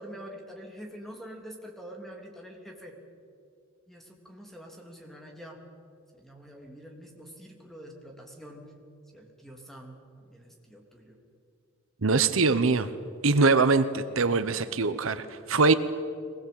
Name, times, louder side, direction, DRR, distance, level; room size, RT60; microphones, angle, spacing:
voice 1, 0.0-3.0 3.9-5.6 6.2-8.6 9.1-11.2, equal, ahead, 1 dB, 3.2 m, -46 dB
voice 2, 12.0-12.9 13.2-15.7, right 4 dB, 70° right, 12 dB, 0.9 m, -23 dB
23.0 x 20.0 x 8.7 m, 2.4 s
head